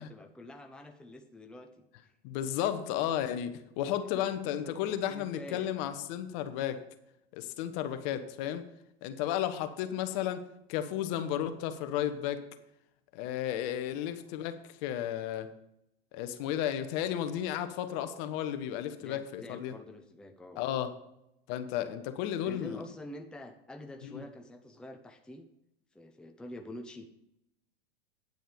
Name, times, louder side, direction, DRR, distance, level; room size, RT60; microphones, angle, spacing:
voice 1, 0.0-1.7 2.0-2.2 4.1-5.7 14.0-14.1 19.0-20.6 22.4-25.4 25.9-27.2, left 1 dB, 5° left, 0.7 m, -47 dB
voice 2, 2.2-6.8 7.3-8.7 9.0-10.4 10.7-12.4 13.1-15.5 16.1-19.7 20.6-20.9 21.5-22.8, left 11 dB, 50° left, 1.1 m, -33 dB
9.4 x 7.7 x 5.2 m
hypercardioid pair, 105°, 31 cm